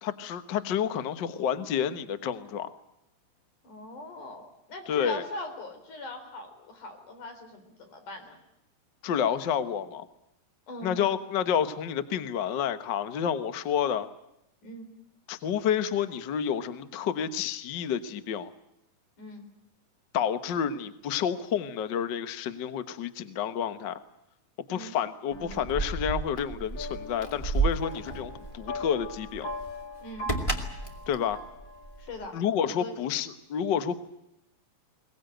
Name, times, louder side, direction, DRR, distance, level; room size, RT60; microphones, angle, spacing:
voice 1, 0.0-2.7 4.9-5.2 9.0-10.1 10.8-14.1 15.3-18.5 20.1-24.0 24.7-29.5 31.1-31.4 32.3-34.0, left 8 dB, 85° left, 11 dB, 1.0 m, -29 dB
voice 2, 3.6-8.4 10.7-11.0 14.6-14.9 19.2-19.5 24.7-25.0 30.0-30.3 32.0-32.4 32.6-33.0, left 2 dB, 60° left, 6 dB, 5.2 m, -41 dB
sound 1, 25.3-32.3, left 2 dB, 35° left, 3.1 m, -42 dB
Keys jangling, 25.3-32.3, right 4 dB, 10° left, 1.9 m, -33 dB
22.0 x 20.0 x 9.1 m, 0.82 s
omnidirectional pair, 4.0 m